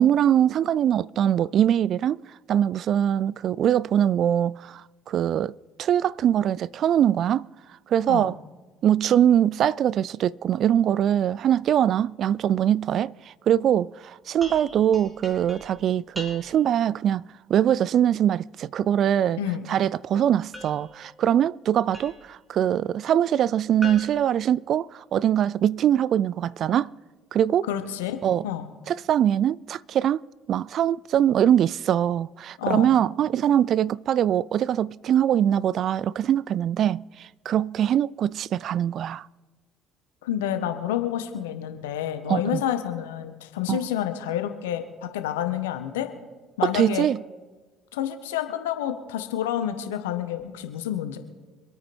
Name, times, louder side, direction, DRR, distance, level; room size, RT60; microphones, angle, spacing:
voice 1, 0.0-2.2 2.5-5.5 5.8-7.5 7.9-8.4 8.8-17.2 17.5-19.4 19.7-26.9 27.3-27.7 28.2-28.4 28.9-30.2 30.5-39.3 42.3-42.6 43.7-43.8 46.6-47.2, right 10 dB, 55° right, 0.3 m, -22 dB
sound 1, 14.4-16.8 20.5-22.4 23.8-25.3, equal, 15° right, 3.7 m, -42 dB
voice 2, 27.7-28.2 28.4-28.7 32.6-33.0 40.2-46.1 46.6-47.0 47.9-51.2, left 10 dB, 80° left, 1.4 m, -29 dB
26.0 x 9.0 x 4.4 m
hypercardioid pair, 55°, 0 cm